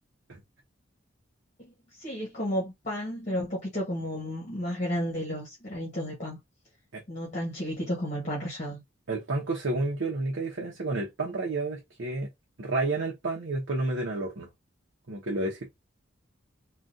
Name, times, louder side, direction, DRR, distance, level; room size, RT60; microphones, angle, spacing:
voice 1, 1.6-6.4 7.1-8.8, equal, 35° left, 1.2 m, -32 dB
voice 2, 9.1-12.3 12.6-14.5 15.1-15.7, right 2 dB, 70° right, 0.8 m, -30 dB
3.6 x 2.4 x 2.6 m
head